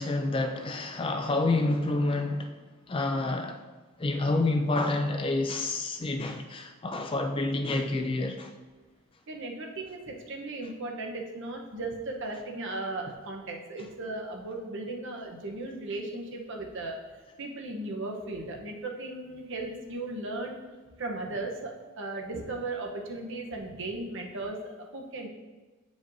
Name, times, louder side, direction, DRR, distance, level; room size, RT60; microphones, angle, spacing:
voice 1, 0.0-2.5 2.9-3.6 4.0-8.5, left 2 dB, 25° left, 5 dB, 0.4 m, -28 dB
voice 2, 9.3-20.6 21.0-25.3, right 2 dB, 60° right, 1 dB, 0.9 m, -36 dB
8.8 x 5.0 x 2.7 m, 1.3 s
head